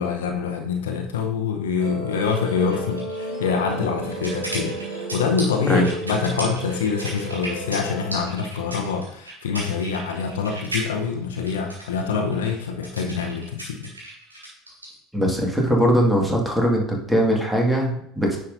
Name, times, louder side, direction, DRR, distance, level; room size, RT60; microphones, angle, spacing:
voice 1, 0.0-13.9, left 5 dB, 70° left, 4 dB, 0.7 m, -25 dB
Musical instrument, 1.8-8.2, right 1 dB, 70° right, 1.8 m, -33 dB
sound 1, 2.2-14.9, right 1 dB, 90° right, 2.1 m, -36 dB
voice 2, 15.1-18.4, equal, 5° right, -1 dB, 1.9 m, -20 dB
9.6 x 5.5 x 2.6 m, 0.71 s
figure-of-eight pair, 70°, 0 cm